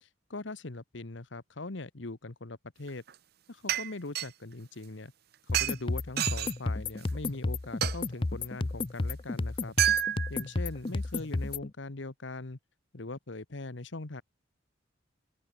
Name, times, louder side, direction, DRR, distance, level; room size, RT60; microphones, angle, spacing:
voice 1, 0.0-3.0 3.5-5.1 5.5-9.7 10.3-12.6 12.9-14.2, left 2 dB, 65° left, 1.2 m, -41 dB
sound 1, 2.9-3.2 3.7-4.3 5.5-5.8 6.2-6.6 7.1-7.2 7.8-8.0 9.8-10.4 11.0-11.1, right 12 dB, 50° right, 0.6 m, -28 dB
sound 2, 5.5-11.7, left 3 dB, 25° left, 0.5 m, -32 dB
open air
head